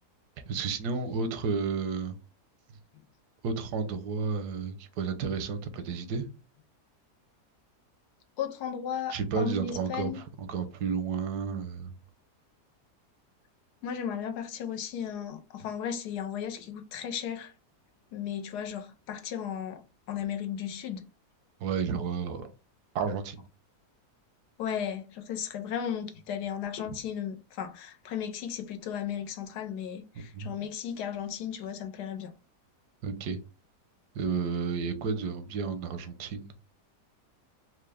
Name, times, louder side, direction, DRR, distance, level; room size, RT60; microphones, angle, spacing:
voice 1, 0.5-2.2 3.4-6.3 9.1-11.9 21.6-22.5 22.9-23.4 26.9-27.0 30.1-30.5 33.0-33.4 34.1-36.5, right 5 dB, 80° right, 1.2 m, -32 dB
voice 2, 8.4-10.2 13.8-17.5 18.1-19.8 20.1-21.1 24.6-32.3, left 8 dB, 85° left, 1.3 m, -35 dB
4.4 x 2.1 x 3.3 m
omnidirectional pair, 1.7 m